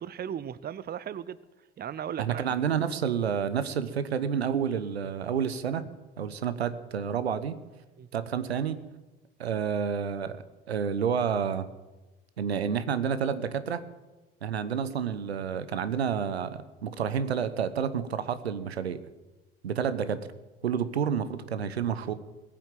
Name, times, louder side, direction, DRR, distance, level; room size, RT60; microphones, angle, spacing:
voice 1, 0.0-1.4 1.8-2.6 8.0-8.1, right 9 dB, 30° right, 18 dB, 0.8 m, -37 dB
voice 2, 2.2-5.8 6.2-7.6 8.1-8.8 9.4-11.7 12.4-13.8 14.4-19.0 19.6-20.2 20.6-22.1, right 7 dB, 85° right, 13 dB, 1.0 m, -29 dB
20.5 x 7.4 x 9.1 m, 1.1 s
figure-of-eight pair, 60°, 31 cm